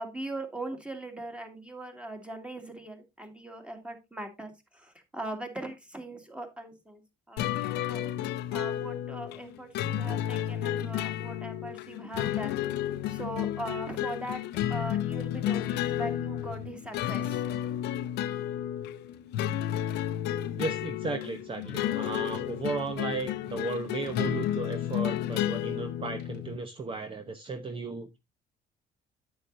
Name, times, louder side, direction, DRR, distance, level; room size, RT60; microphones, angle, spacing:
voice 1, 0.0-7.0 7.3-8.1 8.5-12.6 13.1-14.4 14.7-17.4, right 1 dB, 5° right, 2.3 m, -40 dB
sound 1, 7.4-26.6, left 11 dB, 85° left, 0.7 m, -32 dB
voice 2, 20.6-28.2, right 3 dB, 30° right, 0.9 m, -35 dB
9.5 x 8.6 x 2.6 m
cardioid pair, 110°, 17 cm